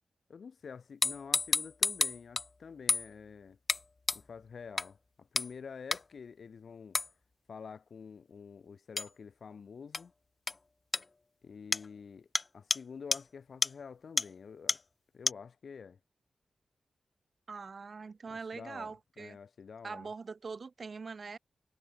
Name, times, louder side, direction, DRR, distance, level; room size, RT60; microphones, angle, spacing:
voice 1, 0.3-3.6 4.1-7.0 7.5-10.1 11.4-12.3 12.5-14.8 15.1-16.0 18.3-18.9 19.2-20.1, left 6 dB, 70° left, 7.1 m, -48 dB
sound 1, 1.0-2.5 2.9-3.1 3.7-3.8 4.1-4.2 4.8-4.9 5.4-5.5 5.9-6.0 6.9-7.1 9.0-9.1 9.9-10.0 10.5-10.6 10.9-11.0 11.7-11.9 12.3-12.4 12.7-12.8 13.1-13.2 13.6-13.7 14.2-14.3 14.7-14.8 15.3-15.4, left 3 dB, 35° left, 0.7 m, -29 dB
voice 2, 17.5-19.4 19.8-21.4, right 4 dB, 55° right, 1.7 m, -43 dB
wide cardioid pair, 85°, 0 cm